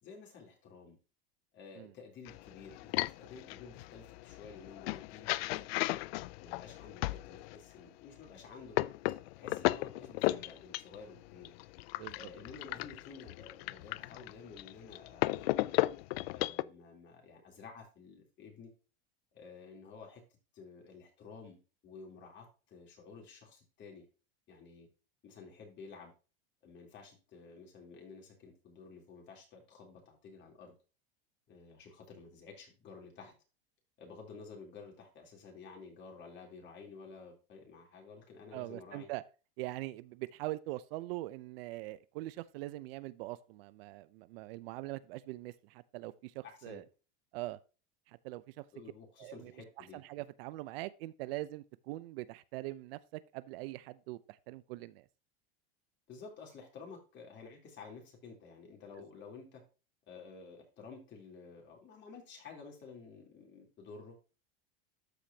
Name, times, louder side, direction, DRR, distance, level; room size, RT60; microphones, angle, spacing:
voice 1, 0.0-1.0 1.5-5.7 6.4-8.8 9.4-11.5 12.1-15.8 16.3-18.7 19.3-20.2 20.5-24.1 24.5-24.9 25.2-26.1 26.6-30.8 31.5-33.3 34.0-39.1 46.4-46.8 48.7-50.0 56.1-59.6 60.1-64.3, left 5 dB, 35° left, 3.5 m, -52 dB
sound 1, 2.3-7.6 8.2-16.6, left 19 dB, 75° left, 0.5 m, -35 dB
voice 2, 12.0-12.3 38.5-39.2 39.6-46.8 47.3-47.6 48.1-48.6 49.2-49.5 49.8-55.1, right 18 dB, 70° right, 0.7 m, -42 dB
13.0 x 5.1 x 2.8 m
supercardioid pair, 130°, 31 cm